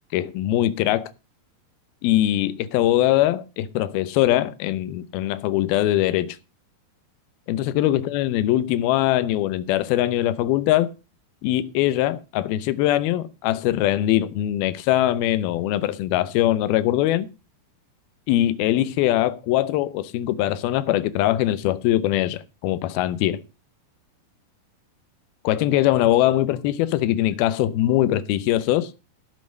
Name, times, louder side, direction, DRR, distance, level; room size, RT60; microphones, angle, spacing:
voice 1, 0.1-1.1 2.0-6.4 7.5-10.9 11.4-17.3 18.3-23.4 25.4-28.9, left 14 dB, 80° left, 2.7 m, -22 dB
12.5 x 7.7 x 6.4 m
omnidirectional pair, 4.4 m